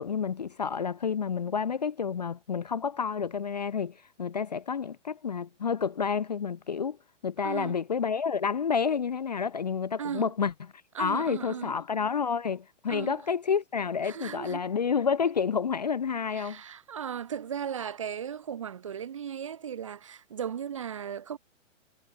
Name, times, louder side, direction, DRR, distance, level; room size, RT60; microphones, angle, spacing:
voice 1, 0.0-7.0 7.2-10.5 11.0-16.6, left 6 dB, 35° left, 0.6 m, -29 dB
voice 2, 7.4-7.8 10.0-10.3 10.9-11.7 12.9-13.2 14.0-14.7 16.3-21.4, right 8 dB, 25° right, 0.7 m, -36 dB
hypercardioid pair, 175°, 38 cm